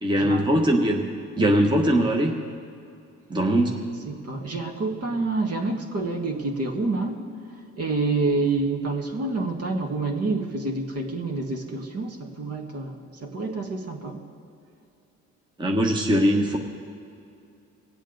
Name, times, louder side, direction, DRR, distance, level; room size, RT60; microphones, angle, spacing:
voice 1, 0.0-2.4 3.3-3.8 15.6-16.6, equal, 15° right, 1 dB, 1.1 m, -21 dB
voice 2, 4.1-7.2 7.8-14.2, right 3 dB, 50° right, 2 dB, 1.8 m, -28 dB
21.0 x 8.1 x 3.9 m, 2.6 s
cardioid pair, 90°, 30 cm